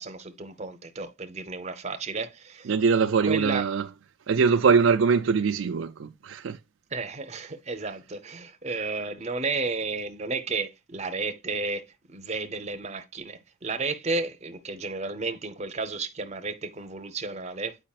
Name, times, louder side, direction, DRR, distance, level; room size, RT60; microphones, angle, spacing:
voice 1, 0.0-2.7 3.2-3.7 6.9-17.8, right 3 dB, 35° right, 0.8 m, -32 dB
voice 2, 2.7-3.9 4.3-6.6, right 5 dB, 75° right, 0.4 m, -22 dB
8.6 x 4.9 x 2.4 m
head